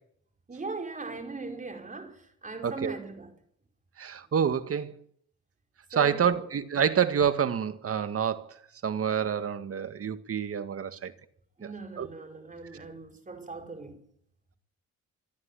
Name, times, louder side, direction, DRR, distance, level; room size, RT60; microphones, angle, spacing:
voice 1, 0.5-3.3 5.9-6.5 11.6-14.0, right 3 dB, 25° right, 5.0 m, -39 dB
voice 2, 2.6-2.9 4.0-4.9 6.0-8.5 8.8-11.1 12.0-12.1, right 7 dB, 50° right, 2.0 m, -27 dB
25.5 x 13.0 x 9.9 m
cardioid pair, 90°, 30 cm